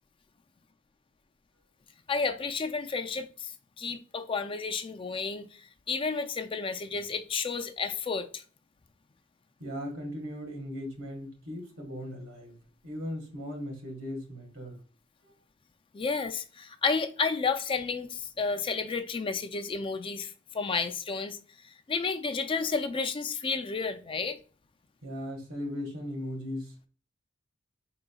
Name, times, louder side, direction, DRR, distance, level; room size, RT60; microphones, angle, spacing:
voice 1, 2.1-3.5 3.8-8.4 15.9-21.4 21.6-24.4, left 4 dB, 25° left, 0.4 m, -31 dB
voice 2, 9.6-12.6 12.8-14.8 15.2-15.3 25.0-26.7, equal, 80° right, 1.8 m, -38 dB
4.9 x 3.9 x 2.3 m
head